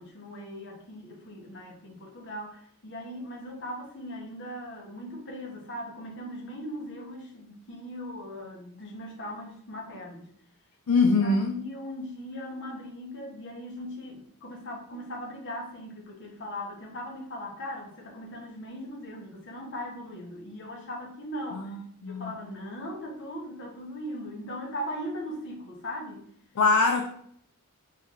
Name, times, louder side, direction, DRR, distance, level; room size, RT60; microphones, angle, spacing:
voice 1, 0.0-10.3 11.2-21.7 22.0-26.3, equal, 55° left, -1 dB, 1.0 m, -39 dB
voice 2, 10.9-11.6 21.7-22.3 26.6-27.1, left 3 dB, 70° left, 3 dB, 0.4 m, -23 dB
3.3 x 3.1 x 3.6 m, 0.66 s
head